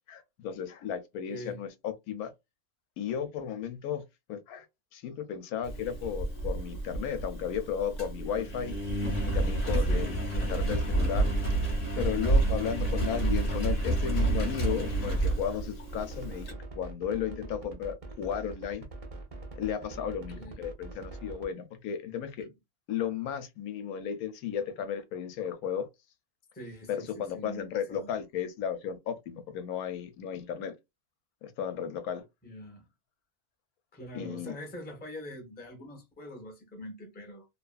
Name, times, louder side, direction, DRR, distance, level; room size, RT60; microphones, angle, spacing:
voice 1, 0.1-2.3 3.0-4.0 4.3-4.7 4.9-8.8 9.2-11.3 12.0-18.9 19.6-22.5 22.9-25.9 26.9-30.7 31.4-32.2 34.1-34.5, left 8 dB, 85° left, 1.1 m, -34 dB
voice 2, 1.3-1.6 9.7-10.2 20.1-20.6 22.4-22.5 26.5-28.1 32.4-32.8 33.9-37.5, equal, 10° left, 0.4 m, -44 dB
Engine, 5.6-16.5, right 2 dB, 30° left, 0.9 m, -29 dB
sound 1, 15.9-21.5, right 2 dB, 55° right, 0.4 m, -43 dB
2.7 x 2.4 x 2.3 m
omnidirectional pair, 1.5 m